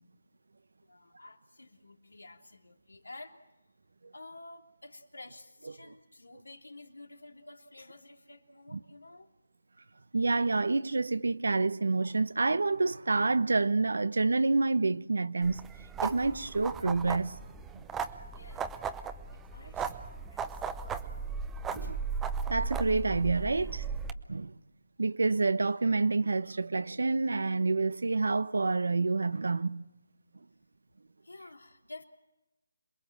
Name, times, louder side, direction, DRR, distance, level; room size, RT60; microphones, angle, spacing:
voice 1, 0.8-3.4 4.1-9.3 18.3-18.7 19.3-20.7 21.8-22.0 31.2-32.0, left 2 dB, 90° left, 3.2 m, -51 dB
voice 2, 10.1-15.7 16.0-17.3 17.7-17.8 21.7-22.0 22.5-23.8 24.3-24.5 25.0-29.8, right 3 dB, 70° right, 1.0 m, -28 dB
sound 1, 15.4-24.1, right 5 dB, 10° right, 0.8 m, -36 dB
27.0 x 22.0 x 7.4 m
figure-of-eight pair, 160°, 0 cm